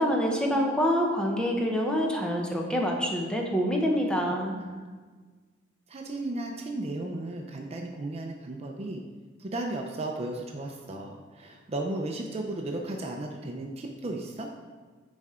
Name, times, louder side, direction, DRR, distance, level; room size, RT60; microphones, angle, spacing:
voice 1, 0.0-4.5, equal, 5° left, 0 dB, 0.9 m, -26 dB
voice 2, 4.5-4.9 5.9-9.0 9.4-14.5, right 2 dB, 35° right, 2 dB, 0.5 m, -35 dB
9.5 x 4.3 x 3.7 m, 1.4 s
head